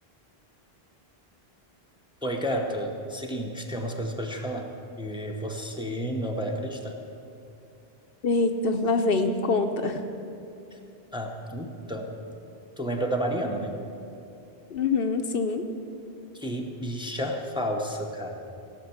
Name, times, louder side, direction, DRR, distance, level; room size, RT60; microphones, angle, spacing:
voice 1, 2.2-4.7 5.0-7.0 10.7-10.8 11.1-12.2 12.8-13.7 16.3-18.4, equal, 5° right, 1 dB, 0.9 m, -31 dB
voice 2, 8.2-10.0 14.7-15.6, left 3 dB, 65° left, 6 dB, 0.9 m, -25 dB
16.5 x 6.1 x 7.1 m, 2.7 s
omnidirectional pair, 1.0 m